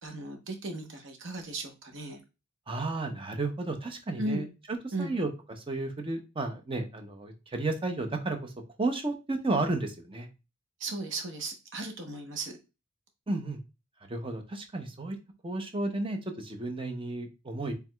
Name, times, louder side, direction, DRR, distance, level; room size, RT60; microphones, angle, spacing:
voice 1, 0.0-2.2 4.2-4.5 4.9-5.1 10.8-12.5, right 2 dB, 65° right, 4 dB, 1.0 m, -36 dB
voice 2, 2.7-4.5 4.8-5.3 5.7-8.5 8.8-10.3 13.3-13.6 14.0-15.2 15.4-17.7, right 2 dB, 25° right, 5 dB, 0.7 m, -32 dB
4.6 x 3.4 x 2.3 m, 0.27 s
head